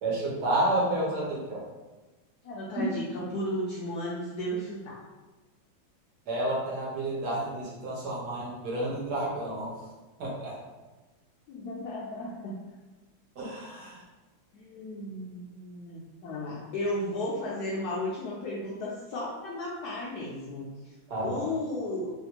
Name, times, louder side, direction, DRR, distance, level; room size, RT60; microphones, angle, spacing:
voice 1, 0.0-1.6 6.3-9.7 10.2-10.6 13.4-14.0 21.1-21.5, right 1 dB, 65° right, -5 dB, 1.2 m, -30 dB
voice 2, 2.4-5.0 11.5-12.6 14.5-20.7 21.2-22.1, left 1 dB, 70° left, -5 dB, 0.9 m, -34 dB
3.3 x 2.5 x 2.8 m, 1.2 s
omnidirectional pair, 2.1 m